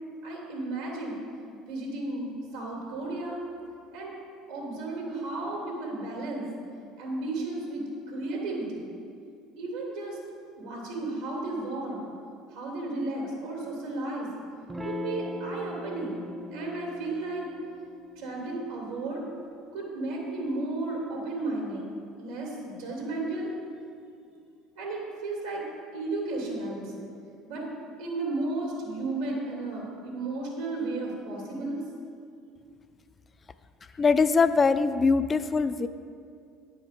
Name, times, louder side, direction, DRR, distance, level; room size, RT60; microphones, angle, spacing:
voice 1, 0.2-1.2 1.7-3.4 3.9-4.1 4.5-6.5 7.0-8.9 9.6-10.2 10.6-12.0 12.5-14.3 14.8-16.2 16.5-17.5 18.2-19.2 19.7-21.9 22.2-23.5 24.8-25.7 25.9-27.1 27.5-27.7 28.0-31.8, right 2 dB, 85° right, -3 dB, 2.3 m, -33 dB
Electric guitar / Strum, 14.7-19.8, left 2 dB, 15° right, 0.6 m, -41 dB
voice 2, 34.0-35.9, left 4 dB, 30° left, 12 dB, 0.4 m, -22 dB
9.1 x 5.1 x 6.7 m, 2.3 s
hypercardioid pair, 75°, 0 cm